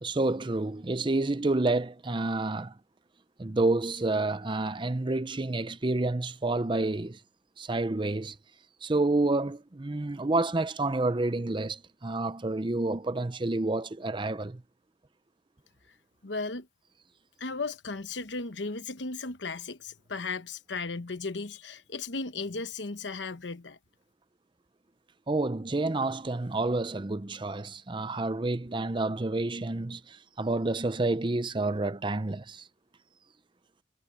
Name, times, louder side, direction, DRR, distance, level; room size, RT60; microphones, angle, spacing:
voice 1, 0.0-2.7 3.4-7.2 7.6-8.4 8.8-14.6 25.3-32.7, right 2 dB, 25° right, 0.6 m, -29 dB
voice 2, 16.2-16.7 17.4-23.8, left 3 dB, 75° left, 1.1 m, -35 dB
head